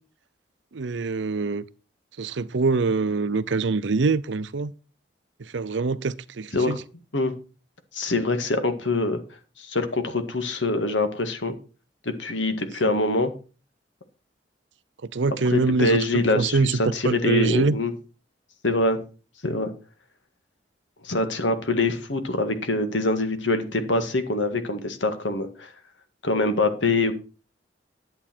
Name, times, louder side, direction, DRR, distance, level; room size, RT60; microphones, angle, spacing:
voice 1, 0.7-1.6 2.2-4.7 5.5-6.8 12.8-12.9 15.1-16.8 17.0-17.8, right 4 dB, 80° right, 0.6 m, -24 dB
voice 2, 7.9-9.2 9.6-11.5 12.0-13.3 15.5-17.9 18.6-19.0 19.4-19.7 21.0-25.7 26.2-27.1, left 2 dB, 90° left, 1.8 m, -24 dB
11.0 x 8.4 x 4.4 m
head